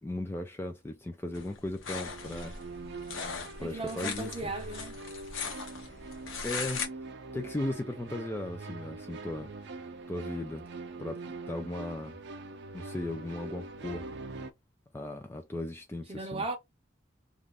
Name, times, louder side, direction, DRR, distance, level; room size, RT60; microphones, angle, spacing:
voice 1, 0.0-2.6 3.6-4.5 6.4-6.9 7.3-9.5 10.1-10.7 11.0-12.2 12.7-14.1 14.9-16.5, left 1 dB, 10° left, 0.3 m, -37 dB
sound 1, 1.3-6.9, left 5 dB, 85° left, 0.9 m, -39 dB
sound 2, 2.0-14.5, right 3 dB, 60° right, 0.5 m, -43 dB
voice 2, 3.6-5.0 16.1-16.6, right 3 dB, 30° right, 0.7 m, -36 dB
2.5 x 2.4 x 3.3 m
head